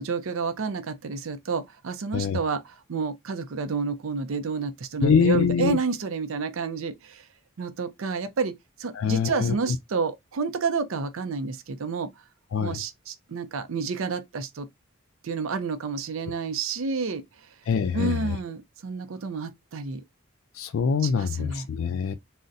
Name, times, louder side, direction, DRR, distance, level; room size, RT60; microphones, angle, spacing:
voice 1, 0.0-7.2 7.6-12.2 12.6-14.7 15.2-17.2 17.9-20.0 21.0-21.7, right 4 dB, 70° right, 0.5 m, -30 dB
voice 2, 5.0-5.8 8.9-9.6 12.5-12.8 17.7-18.4 20.5-22.1, left 6 dB, 70° left, 0.3 m, -24 dB
3.8 x 2.1 x 2.5 m
head